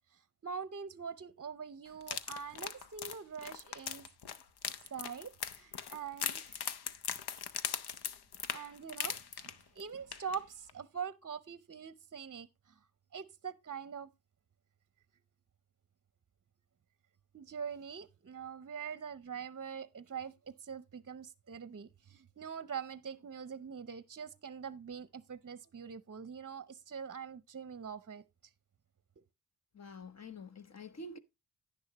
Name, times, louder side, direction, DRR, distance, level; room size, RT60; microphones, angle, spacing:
voice 1, 0.4-4.1 4.9-5.3 5.6-6.7 8.5-9.5 9.8-12.5 13.1-14.1 17.3-20.3 20.6-28.2, right 6 dB, 40° right, 0.7 m, -43 dB
sound 1, 2.0-9.8 10.1-10.4 10.7-10.8, left 8 dB, 90° left, 0.9 m, -40 dB
voice 2, 29.7-31.2, left 2 dB, 45° left, 1.1 m, -47 dB
10.5 x 10.5 x 2.9 m
wide cardioid pair, 100°, 38 cm